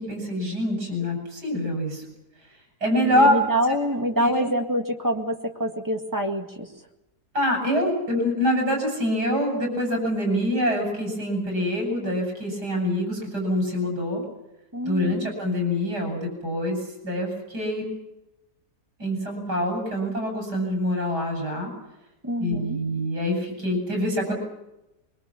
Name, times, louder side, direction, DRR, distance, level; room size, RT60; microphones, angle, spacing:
voice 1, 0.1-2.0 2.8-3.3 4.1-4.5 7.3-14.2 14.8-16.8 17.0-17.8 19.0-21.7 22.4-24.3, left 1 dB, 85° right, 2 dB, 7.2 m, -25 dB
voice 2, 3.0-6.7 14.7-15.3 22.2-22.8, right 1 dB, 10° right, 3 dB, 1.9 m, -26 dB
24.0 x 22.0 x 7.1 m, 0.92 s
omnidirectional pair, 1.7 m